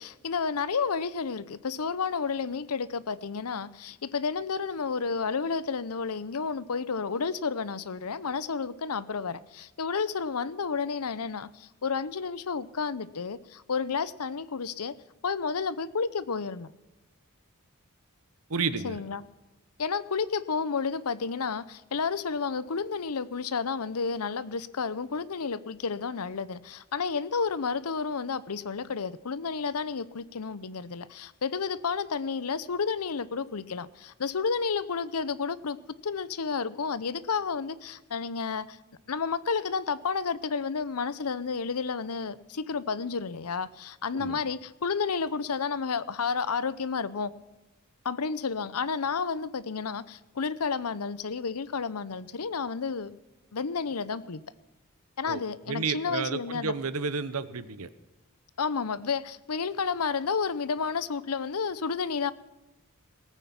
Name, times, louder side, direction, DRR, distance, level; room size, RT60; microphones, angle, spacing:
voice 1, 0.0-14.9 15.2-16.7 18.8-19.2 19.8-35.8 36.0-38.8 39.1-47.3 48.0-53.2 53.5-54.4 55.2-56.7 58.6-62.3, left 5 dB, 85° left, 0.7 m, -31 dB
voice 2, 18.5-19.0 44.1-44.4 55.2-55.4 55.7-57.9, right 5 dB, 75° right, 1.0 m, -31 dB
18.5 x 9.0 x 5.9 m
head